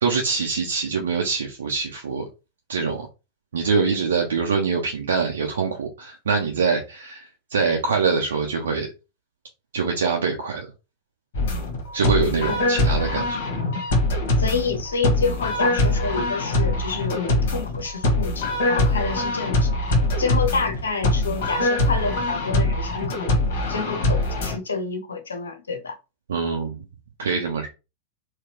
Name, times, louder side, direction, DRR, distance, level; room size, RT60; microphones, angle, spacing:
voice 1, 0.0-2.2 2.7-3.1 3.5-8.9 9.7-10.7 11.9-13.4 26.3-26.8 27.2-27.7, right 5 dB, 65° right, 0.7 m, -24 dB
sound 1, 11.3-24.6, left 1 dB, 55° left, 1.3 m, -23 dB
voice 2, 14.4-19.7 20.2-25.9, left 4 dB, 70° left, 0.9 m, -28 dB
4.0 x 2.3 x 3.0 m
figure-of-eight pair, 90°, 0 cm